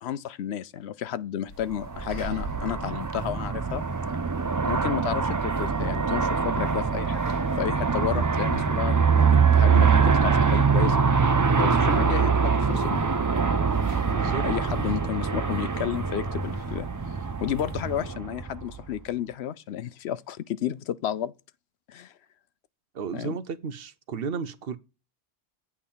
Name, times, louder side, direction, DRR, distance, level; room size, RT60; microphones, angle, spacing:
voice 1, 0.0-3.8 4.6-7.2 7.6-11.0 11.6-13.0 14.1-17.1 17.4-21.3 21.9-22.1 23.1-23.4, left 10 dB, 80° left, 0.9 m, -32 dB
sound 1, 1.5-18.1, left 1 dB, 55° left, 3.1 m, -45 dB
Aircraft, 1.7-19.0, right 5 dB, 30° right, 0.3 m, -24 dB
voice 2, 14.1-14.5 22.9-24.8, right 6 dB, 65° right, 0.9 m, -33 dB
8.7 x 4.6 x 5.5 m
omnidirectional pair, 1.1 m